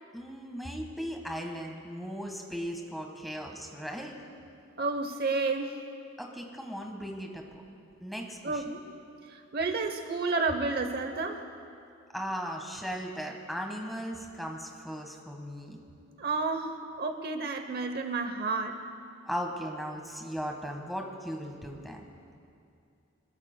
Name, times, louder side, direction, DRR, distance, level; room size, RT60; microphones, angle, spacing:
voice 1, 0.1-4.1 6.2-7.6 8.0-8.8 12.1-15.8 19.2-22.0, equal, ahead, 1 dB, 1.4 m, -37 dB
voice 2, 4.8-5.8 8.4-8.8 9.3-11.4 16.2-18.8, right 3 dB, 50° right, 6 dB, 0.8 m, -31 dB
25.0 x 21.5 x 2.2 m, 2.5 s
head